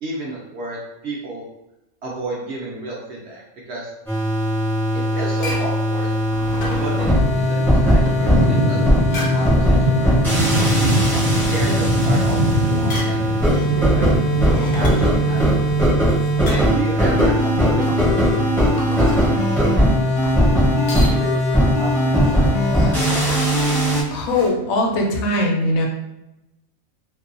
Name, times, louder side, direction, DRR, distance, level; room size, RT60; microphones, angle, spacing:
voice 1, 0.0-1.4 2.0-3.4 3.7-3.9 4.9-6.1 6.8-7.1 7.4-8.8 9.1-10.6 11.5-15.7 16.5-17.9 19.0-23.0, right 2 dB, 65° right, -4 dB, 0.7 m, -32 dB
sound 1, 4.1-24.0, equal, ahead, 0.5 m, -18 dB
sound 2, 5.2-24.5, left 1 dB, 55° left, 0.6 m, -35 dB
sound 3, 6.5-15.8, right 1 dB, 80° right, 1.0 m, -23 dB
voice 2, 24.1-25.9, left 1 dB, 75° left, 1 dB, 1.0 m, -20 dB
2.6 x 2.2 x 2.5 m, 0.91 s
omnidirectional pair, 1.5 m